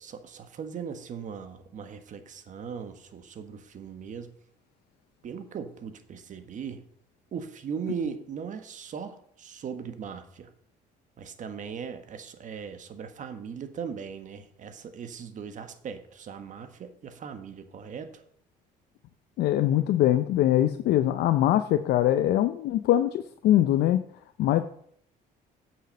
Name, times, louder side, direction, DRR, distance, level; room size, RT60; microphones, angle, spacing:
voice 1, 0.0-4.3 5.2-6.8 7.3-10.5 11.2-18.1, right 6 dB, 50° right, 8 dB, 1.3 m, -38 dB
voice 2, 19.4-24.0 24.4-24.6, left 12 dB, 75° left, 9 dB, 0.6 m, -22 dB
8.3 x 6.2 x 6.4 m, 0.66 s
cardioid pair, 110°, 17 cm